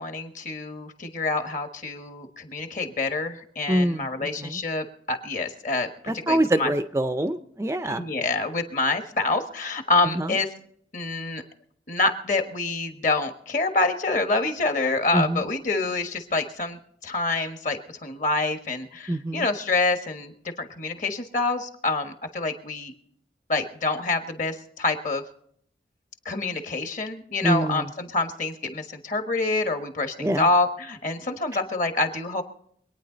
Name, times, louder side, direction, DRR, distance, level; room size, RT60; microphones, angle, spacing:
voice 1, 0.0-5.9 6.3-6.7 7.8-10.5 10.9-11.4 11.9-20.3 20.6-22.9 23.5-25.2 26.2-32.4, left 3 dB, 45° left, 6 dB, 1.4 m, -27 dB
voice 2, 3.7-4.6 6.1-8.0 10.1-10.4 15.1-15.4 19.1-19.4 27.4-27.9 30.2-30.5, right 1 dB, 15° right, 9 dB, 0.5 m, -25 dB
24.5 x 9.6 x 3.9 m, 0.66 s
head